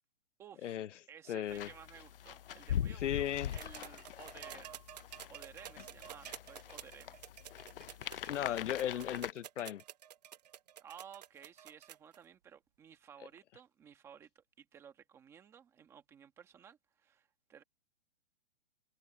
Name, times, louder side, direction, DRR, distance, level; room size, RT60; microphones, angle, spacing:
voice 1, 0.4-0.8 1.1-4.8 5.3-7.2 10.8-17.6, right 8 dB, 5° right, 1.3 m, -56 dB
voice 2, 1.3-1.7 3.0-3.5 8.3-9.8, left 11 dB, 90° left, 0.8 m, -36 dB
sound 1, 1.5-9.3, left 10 dB, 50° left, 0.5 m, -42 dB
sound 2, 3.5-12.2 13.4-13.5, right 11 dB, 35° right, 0.9 m, -51 dB
hypercardioid pair, 175°, 36 cm